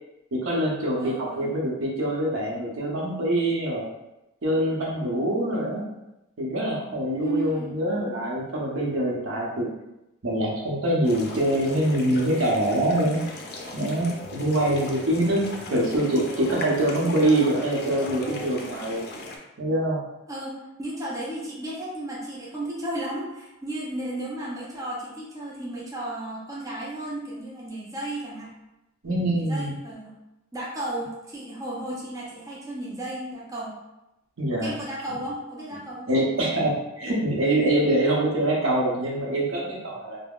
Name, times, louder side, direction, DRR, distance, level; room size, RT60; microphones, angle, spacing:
voice 1, 0.3-3.8 4.4-5.8 6.4-9.7 10.2-13.2 13.7-15.4 15.7-19.0 19.6-20.0 29.0-29.7 34.4-34.7 36.1-40.2, right 1 dB, 75° right, -4 dB, 0.8 m, -24 dB
voice 2, 1.0-1.5 7.2-7.8 20.3-28.5 29.3-30.1 30.5-33.8 34.6-36.1, right 1 dB, 15° right, -5 dB, 0.5 m, -34 dB
sound 1, 11.0-19.4, left 2 dB, 50° left, 0.4 m, -38 dB
3.5 x 2.1 x 2.3 m, 0.94 s
head